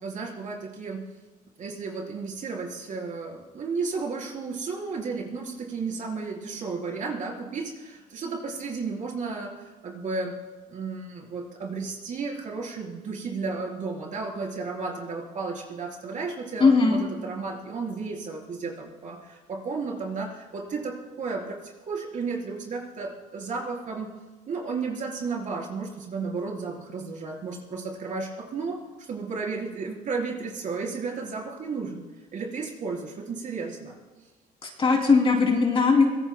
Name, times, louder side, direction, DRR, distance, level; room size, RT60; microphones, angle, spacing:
voice 1, 0.0-1.0 1.6-10.4 10.7-24.1 24.5-28.8 29.1-32.0 32.3-33.9, right 4 dB, 50° right, -1 dB, 4.0 m, -33 dB
voice 2, 16.6-17.0 34.6-36.1, left 4 dB, 30° left, 1 dB, 2.9 m, -19 dB
23.5 x 18.5 x 2.2 m, 1.2 s
cardioid pair, 110°, 17 cm